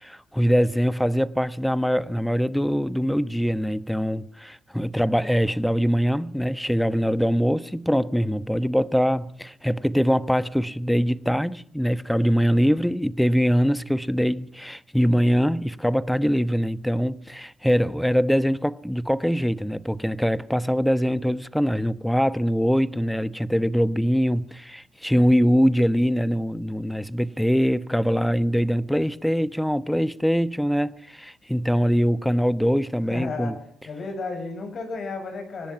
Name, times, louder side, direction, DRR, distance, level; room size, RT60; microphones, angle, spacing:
voice 1, 0.0-33.5, equal, ahead, 1.2 m, -23 dB
voice 2, 33.1-33.5 33.9-35.7, left 4 dB, 55° left, 7.5 m, -33 dB
24.0 x 19.0 x 5.7 m
hypercardioid pair, 45°, 0 cm